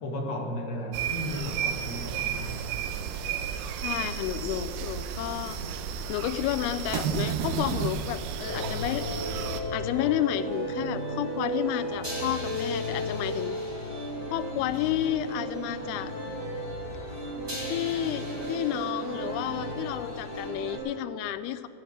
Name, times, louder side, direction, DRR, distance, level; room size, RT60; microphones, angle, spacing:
voice 1, 0.0-2.6, left 1 dB, 65° left, 0 dB, 1.0 m, -34 dB
sound 1, 0.9-9.6, right 7 dB, 85° right, 2.5 m, -32 dB
voice 2, 3.8-5.6 6.1-9.0 9.7-13.6 14.3-16.1 17.6-21.7, left 12 dB, 90° left, 13 dB, 2.5 m, -31 dB
sound 2, 8.4-20.8, equal, 10° right, 1.4 m, -34 dB
15.0 x 5.2 x 9.3 m, 2.7 s
omnidirectional pair, 4.4 m